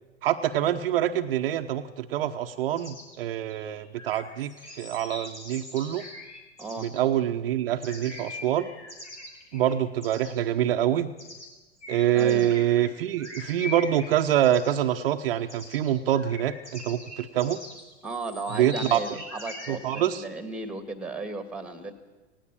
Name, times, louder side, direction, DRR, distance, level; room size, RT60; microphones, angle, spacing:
voice 1, 0.2-6.0 6.8-8.7 9.5-11.1 11.9-17.6 18.6-19.0 19.7-20.2, right 11 dB, 55° right, 6 dB, 1.0 m, -25 dB
sound 1, 2.8-7.0 7.8-9.7 10.0-10.5 11.2-11.5 11.8-20.2, left 1 dB, 85° left, 4.6 m, -42 dB
voice 2, 6.6-6.9 12.1-12.5 18.0-21.9, right 3 dB, 5° right, 10 dB, 2.0 m, -35 dB
18.0 x 17.5 x 8.8 m, 1.2 s
figure-of-eight pair, 100°, 34 cm